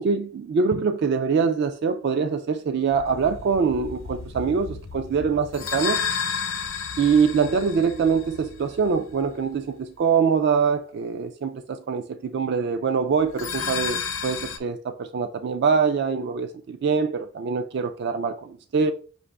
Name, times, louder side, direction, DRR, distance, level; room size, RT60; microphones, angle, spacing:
voice 1, 0.0-6.0 7.0-18.9, right 5 dB, 55° right, 0.3 m, -24 dB
sound 1, 2.9-9.5 13.2-14.6, left 6 dB, 80° left, 0.7 m, -32 dB
5.8 x 2.5 x 3.3 m
head